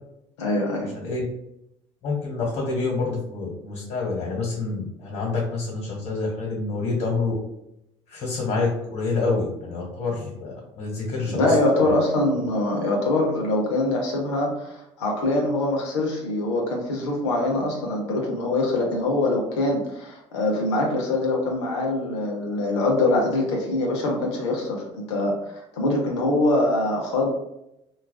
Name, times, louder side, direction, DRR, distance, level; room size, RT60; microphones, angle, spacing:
voice 1, 0.4-0.9 11.3-27.3, left 2 dB, 90° left, 0 dB, 0.6 m, -23 dB
voice 2, 2.0-7.3 8.1-11.5 11.8-11.9, left 3 dB, 60° left, -4 dB, 1.3 m, -27 dB
2.4 x 2.3 x 2.3 m, 0.84 s
hypercardioid pair, 70°, 14 cm